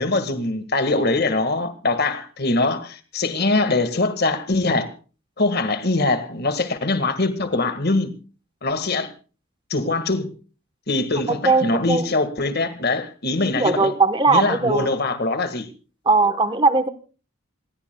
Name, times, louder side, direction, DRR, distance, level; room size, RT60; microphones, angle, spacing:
voice 1, 0.0-4.9 5.4-8.1 8.6-9.1 9.7-10.3 10.9-13.9 14.3-15.7, left 2 dB, 45° left, 1.7 m, -22 dB
voice 2, 11.4-12.0 13.5-14.9 16.1-16.9, right 3 dB, 20° right, 1.1 m, -19 dB
27.5 x 17.0 x 2.3 m
head